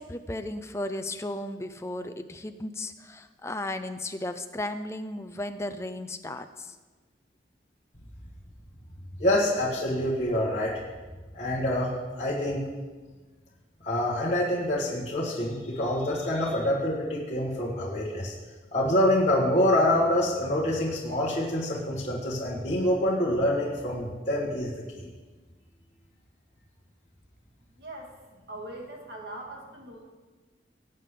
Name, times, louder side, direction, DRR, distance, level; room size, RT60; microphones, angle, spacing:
voice 1, 0.0-6.8, left 1 dB, 15° left, 8 dB, 0.5 m, -35 dB
voice 2, 9.2-10.7 11.3-11.9 12.2-12.6 13.8-18.3 18.7-24.7 24.9-25.1, left 1 dB, 35° left, -7 dB, 1.8 m, -26 dB
voice 3, 27.8-28.2 28.5-30.0, right 1 dB, 60° right, 0 dB, 2.3 m, -41 dB
19.0 x 8.1 x 3.9 m, 1.3 s
head